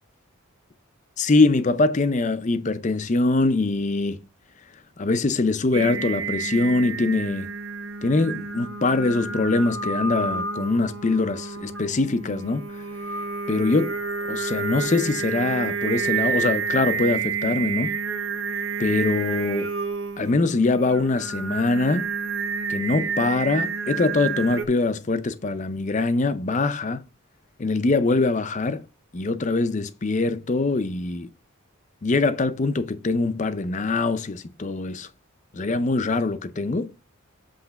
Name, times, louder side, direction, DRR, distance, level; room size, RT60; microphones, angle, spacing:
voice 1, 1.2-4.2 5.0-7.5 8.0-12.7 13.5-14.0 14.3-17.9 18.8-19.7 20.2-22.1 22.7-27.0 27.6-28.8 29.1-31.3 32.0-35.1 35.5-36.9, left 3 dB, 35° left, 0.5 m, -23 dB
Singing, 5.7-24.6, right 5 dB, 60° right, 0.8 m, -29 dB
7.9 x 3.2 x 5.7 m
head